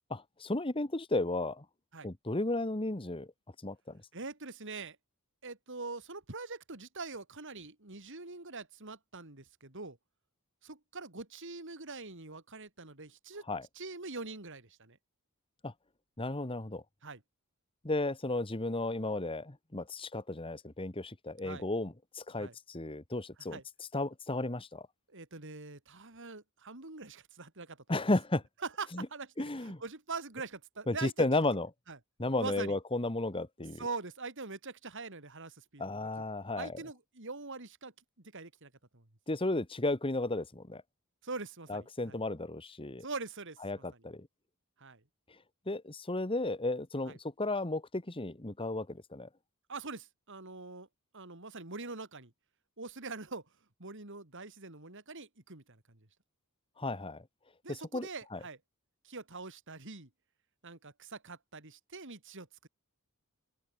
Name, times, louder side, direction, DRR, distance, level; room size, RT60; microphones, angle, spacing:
voice 1, 0.1-1.6 2.0-3.3 3.6-4.0 13.5-13.7 15.6-15.7 16.2-16.8 17.8-23.6 23.9-24.9 27.9-28.4 28.9-29.1 29.4-29.8 30.9-31.7 32.2-33.8 35.8-36.7 39.3-40.8 41.7-43.0 43.6-44.3 45.7-49.3 56.8-57.2 57.7-58.4, left 2 dB, 25° left, 1.4 m, -34 dB
voice 2, 4.1-5.0 5.4-10.0 10.6-13.4 13.7-15.0 17.0-17.2 21.4-21.6 22.4-22.5 23.5-23.6 25.1-27.8 28.6-31.3 31.9-32.0 32.4-32.8 33.8-36.2 36.5-37.9 38.2-39.1 41.2-42.2 43.0-44.0 44.8-45.0 47.0-47.2 49.7-50.9 51.1-52.3 52.8-53.4 53.8-56.1 57.6-58.6 59.0-60.1 60.6-62.7, right 3 dB, 55° right, 3.4 m, -43 dB
open air
head